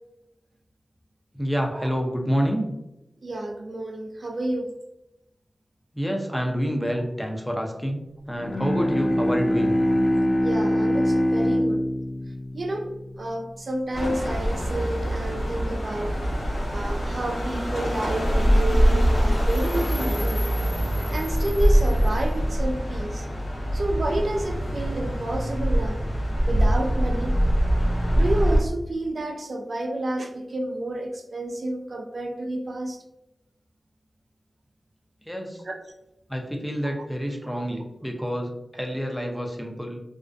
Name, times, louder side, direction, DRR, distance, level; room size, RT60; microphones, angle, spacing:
voice 1, 1.3-2.7 5.9-8.0 8.3-9.8 35.3-35.6 36.3-40.0, equal, 5° left, 1 dB, 0.6 m, -28 dB
voice 2, 3.2-4.7 10.4-11.8 12.5-12.9 13.2-16.1 16.7-20.4 21.1-23.3 23.7-26.0 26.5-27.4 28.1-33.0 35.7-35.8, right 1 dB, 65° right, 4 dB, 0.4 m, -30 dB
Bowed string instrument, 8.3-13.7, equal, 55° left, 0.3 m, -24 dB
sound 1, 13.9-28.6, equal, 85° left, 0.9 m, -23 dB
2.5 x 2.1 x 2.4 m, 0.91 s
cardioid pair, 45°, 0 cm